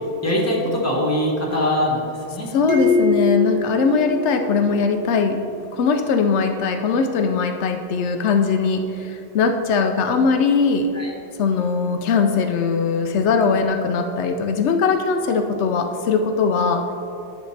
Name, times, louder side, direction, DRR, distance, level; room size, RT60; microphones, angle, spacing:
voice 1, 0.2-2.5 10.9-11.1, left 1 dB, 15° left, -4 dB, 1.4 m, -22 dB
voice 2, 2.5-10.9 11.4-16.9, left 5 dB, 85° left, 6 dB, 0.9 m, -20 dB
sound 1, 2.7-5.2, left 3 dB, 80° right, 1.5 m, -23 dB
10.5 x 6.4 x 3.3 m, 2.7 s
omnidirectional pair, 1.1 m